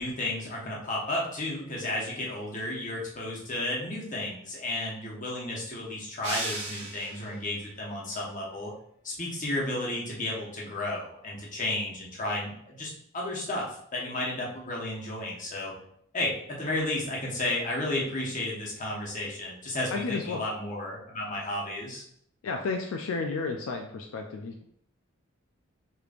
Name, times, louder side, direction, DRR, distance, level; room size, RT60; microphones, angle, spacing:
voice 1, 0.0-8.7 9.0-13.7 13.9-15.7 16.1-22.0, left 1 dB, 40° left, -4 dB, 1.1 m, -33 dB
sound 1, 6.2-7.5, right 2 dB, 75° right, 1.4 m, -36 dB
voice 2, 19.9-20.4 22.4-24.7, left 4 dB, 85° left, 3 dB, 0.4 m, -32 dB
5.0 x 3.2 x 2.4 m, 0.69 s
head